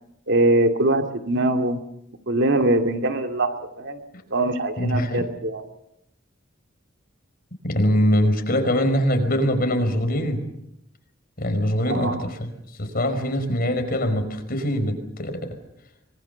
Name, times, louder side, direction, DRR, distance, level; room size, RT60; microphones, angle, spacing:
voice 1, 0.3-1.8 2.3-4.0 4.3-5.6 11.9-12.2, right 2 dB, 60° right, 5 dB, 2.5 m, -22 dB
voice 2, 4.8-5.2 7.6-10.4 11.4-12.5 12.8-15.5, equal, 45° left, 7 dB, 5.1 m, -23 dB
25.0 x 24.0 x 6.9 m, 0.80 s
head